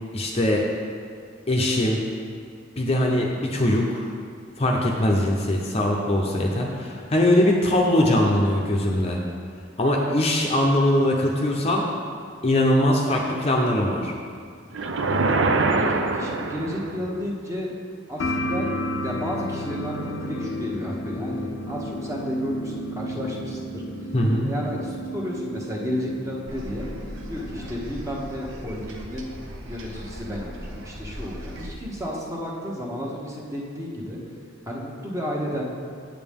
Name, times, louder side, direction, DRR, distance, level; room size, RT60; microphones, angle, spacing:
voice 1, 0.1-0.6 1.5-2.0 2.8-4.1 4.6-9.2 9.8-11.9 12.4-14.1 24.1-24.5, left 1 dB, 30° left, -1 dB, 0.7 m, -21 dB
sound 1, 14.7-17.1, right 3 dB, 70° right, 0.6 m, -23 dB
voice 2, 15.7-17.7 18.1-18.7 19.0-23.8 24.4-26.8 27.3-29.3 29.7-34.2 34.7-35.7, equal, 15° right, -3 dB, 1.2 m, -32 dB
sound 2, 18.2-27.7, equal, 75° left, 0.6 m, -32 dB
sound 3, 26.5-31.7, equal, 85° right, 0.9 m, -38 dB
8.9 x 7.5 x 3.6 m, 2.1 s
head